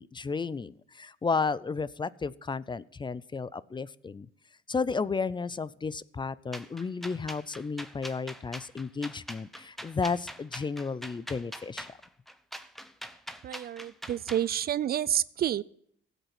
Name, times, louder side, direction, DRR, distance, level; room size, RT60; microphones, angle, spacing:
voice 1, 0.0-4.3 4.7-11.9, left 4 dB, 25° left, 19 dB, 0.5 m, -33 dB
sound 1, 6.5-14.5, equal, ahead, 0.9 m, -43 dB
voice 2, 13.4-15.6, right 10 dB, 50° right, 20 dB, 0.4 m, -29 dB
15.5 x 8.1 x 6.0 m, 0.67 s
cardioid pair, 90°, 20 cm